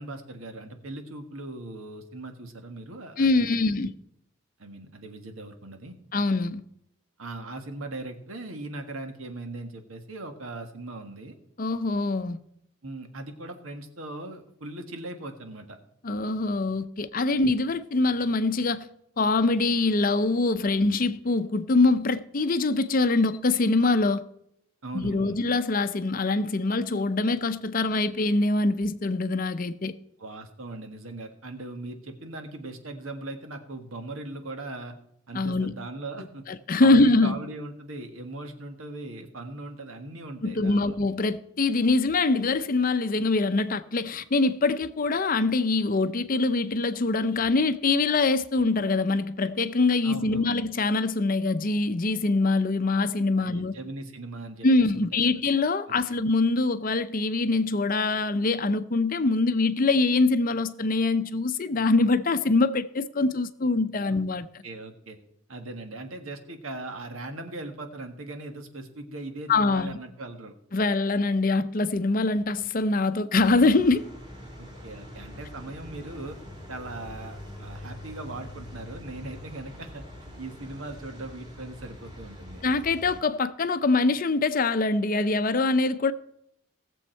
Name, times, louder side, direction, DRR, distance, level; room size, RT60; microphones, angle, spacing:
voice 1, 0.0-3.8 4.6-6.0 7.2-11.3 12.8-15.8 17.4-17.6 24.8-25.4 30.2-34.9 35.3-36.4 36.8-41.0 50.0-50.6 53.4-55.4 55.9-56.0 64.6-65.2 65.5-70.5 74.6-76.4 76.7-80.1 80.4-82.6, right 2 dB, 85° right, 1.6 m, -39 dB
voice 2, 3.2-3.9 6.1-6.6 11.6-12.4 16.0-18.9 19.2-24.2 24.9-30.0 35.3-35.7 36.5-37.3 40.4-53.7 54.6-64.5 69.5-70.0 70.7-74.0 82.6-86.1, left 3 dB, 40° left, 0.6 m, -24 dB
sound 1, 73.3-83.2, left 1 dB, 20° right, 2.5 m, -44 dB
18.0 x 7.2 x 4.5 m
head